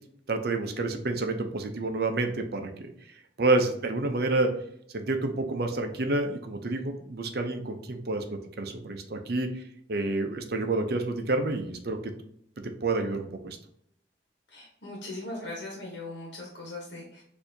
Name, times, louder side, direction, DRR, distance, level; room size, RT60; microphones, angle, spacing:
voice 1, 0.3-4.5 4.9-9.6 9.9-12.0 12.8-13.6, right 2 dB, 60° right, 5 dB, 0.6 m, -29 dB
voice 2, 14.5-17.2, left 2 dB, 65° left, -2 dB, 1.2 m, -39 dB
6.6 x 2.7 x 2.7 m, 0.70 s
head